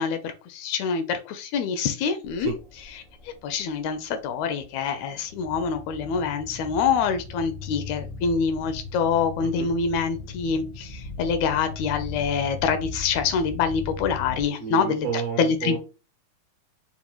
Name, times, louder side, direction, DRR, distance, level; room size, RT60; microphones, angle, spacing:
voice 1, 0.0-2.5 3.4-15.1 15.4-15.8, left 6 dB, 80° left, 1.8 m, -25 dB
sound 1, 2.2-14.4, left 3 dB, 50° left, 0.7 m, -38 dB
voice 2, 14.6-15.8, right 7 dB, 70° right, 1.6 m, -31 dB
5.3 x 2.1 x 2.9 m
omnidirectional pair, 3.5 m